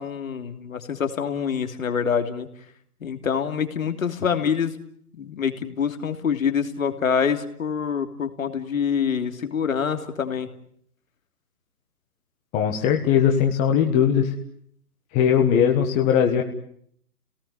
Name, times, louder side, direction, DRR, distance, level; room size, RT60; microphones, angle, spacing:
voice 1, 0.0-2.5 3.0-4.7 5.2-10.5, left 7 dB, 60° left, 7 dB, 3.1 m, -26 dB
voice 2, 12.5-14.3 15.1-16.4, left 8 dB, 15° left, 2 dB, 1.5 m, -19 dB
29.5 x 18.5 x 9.9 m, 0.67 s
figure-of-eight pair, 145°, 46 cm